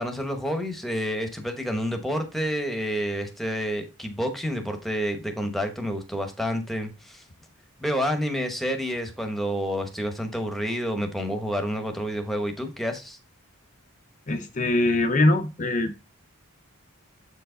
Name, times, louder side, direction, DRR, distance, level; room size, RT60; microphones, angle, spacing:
voice 1, 0.0-7.2 7.8-13.2, equal, ahead, 0.9 m, -29 dB
voice 2, 14.3-15.9, left 2 dB, 35° left, 0.5 m, -22 dB
7.3 x 4.7 x 3.8 m
head